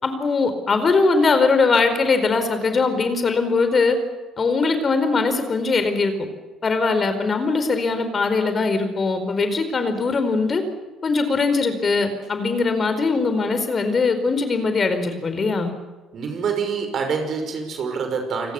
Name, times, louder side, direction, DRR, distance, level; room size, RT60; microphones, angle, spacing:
voice 1, 0.0-4.0 4.4-6.1 6.6-10.6 11.0-15.7, left 4 dB, 40° left, 9 dB, 4.5 m, -21 dB
voice 2, 16.1-18.5, right 5 dB, 50° right, 5 dB, 5.9 m, -26 dB
28.5 x 24.5 x 7.1 m, 1.2 s
figure-of-eight pair, 50°, 0 cm